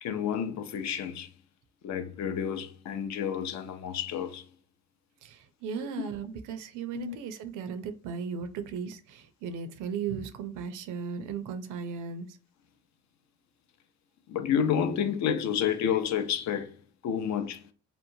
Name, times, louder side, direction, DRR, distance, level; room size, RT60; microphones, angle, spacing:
voice 1, 0.0-1.3 1.8-4.4 6.0-6.1 6.9-7.2 14.3-16.7 17.0-17.6, left 8 dB, 65° left, 0.5 m, -30 dB
voice 2, 5.2-12.3, right 6 dB, 80° right, 0.5 m, -36 dB
2.9 x 2.1 x 2.6 m
cardioid pair, 90°, 30 cm